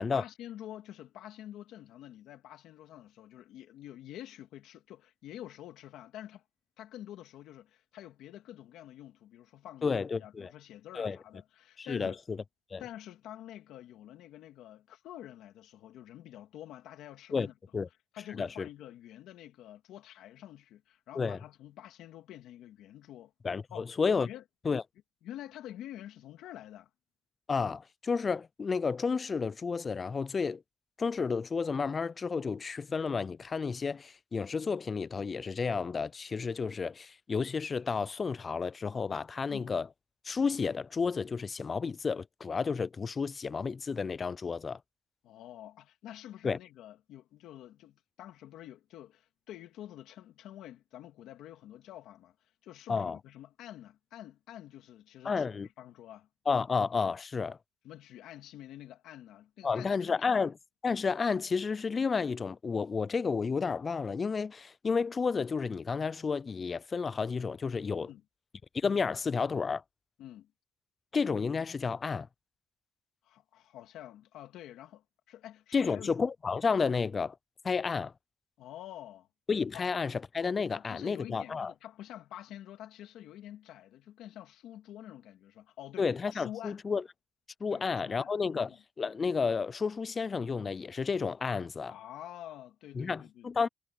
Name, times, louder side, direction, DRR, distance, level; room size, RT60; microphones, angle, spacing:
voice 1, 0.1-6.4 6.8-12.2 12.8-17.8 18.1-23.3 23.7-24.0 24.2-24.4 25.2-26.9 39.5-39.7 45.2-52.3 52.6-56.3 57.8-60.3 68.0-68.2 70.2-70.5 73.2-76.1 78.6-79.3 79.7-79.9 80.7-86.8 87.7-88.8 91.9-93.7, left 12 dB, 85° left, 2.4 m, -48 dB
voice 2, 9.8-10.5 10.9-11.2 11.8-12.4 12.7-12.8 17.3-17.5 17.7-17.9 18.4-18.7 21.2-21.4 23.4-24.3 24.6-24.8 27.5-30.6 31.0-39.9 40.2-44.8 46.4-46.6 52.9-53.2 55.2-55.7 56.5-57.6 59.6-60.6 60.8-68.1 68.7-69.8 71.1-72.3 75.7-77.4 77.6-78.1 79.5-81.7 86.0-87.0 87.6-91.9 93.0-93.7, left 5 dB, 35° left, 0.5 m, -31 dB
cardioid pair, 90°, 0 cm